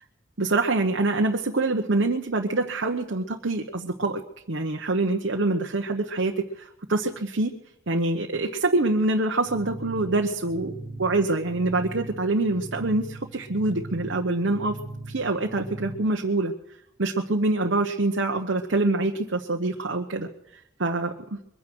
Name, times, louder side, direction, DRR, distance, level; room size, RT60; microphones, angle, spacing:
voice 1, 0.4-4.2 4.5-7.6 7.9-14.8 15.1-16.5 17.0-20.3 20.8-21.4, right 2 dB, 65° right, 2 dB, 1.0 m, -25 dB
sound 1, 9.5-16.0, right 2 dB, 60° left, 4.7 m, -39 dB
22.5 x 9.9 x 6.2 m, 0.81 s
head